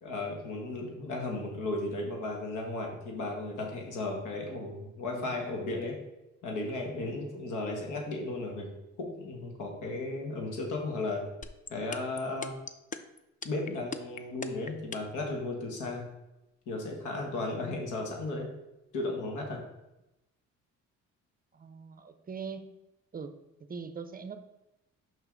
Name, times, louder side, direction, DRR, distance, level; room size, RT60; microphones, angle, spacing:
voice 1, 0.0-5.9 6.4-8.7 9.0-11.2 11.7-12.5 13.4-16.0 16.7-18.5 18.9-19.6, left 2 dB, 80° left, 1 dB, 1.6 m, -35 dB
sound 1, 11.4-15.2, left 5 dB, 25° left, 0.4 m, -38 dB
voice 2, 21.5-22.7 23.1-23.3 23.7-24.4, right 5 dB, 30° right, 9 dB, 0.6 m, -41 dB
6.0 x 5.5 x 3.8 m, 0.95 s
cardioid pair, 90°, 30 cm